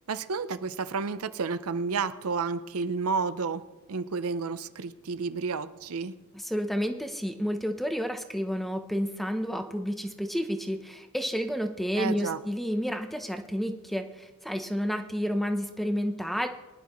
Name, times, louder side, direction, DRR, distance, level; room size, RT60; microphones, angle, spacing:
voice 1, 0.1-6.2 12.0-12.4, right 4 dB, 85° right, 13 dB, 0.6 m, -31 dB
voice 2, 6.3-16.5, equal, ahead, 6 dB, 0.8 m, -30 dB
22.5 x 11.0 x 3.1 m, 1.1 s
head